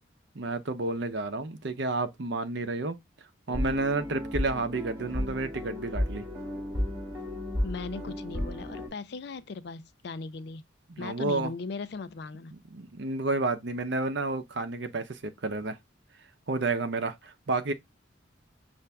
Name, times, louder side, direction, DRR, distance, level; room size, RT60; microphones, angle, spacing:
voice 1, 0.3-3.0 3.5-6.2 10.9-11.5 12.5-15.8 16.5-17.7, right 3 dB, 60° right, 0.7 m, -31 dB
sound 1, 3.5-8.9, left 1 dB, 20° right, 2.5 m, -33 dB
voice 2, 7.6-10.6 11.0-12.5, left 4 dB, 55° left, 0.4 m, -38 dB
5.6 x 2.6 x 3.3 m
head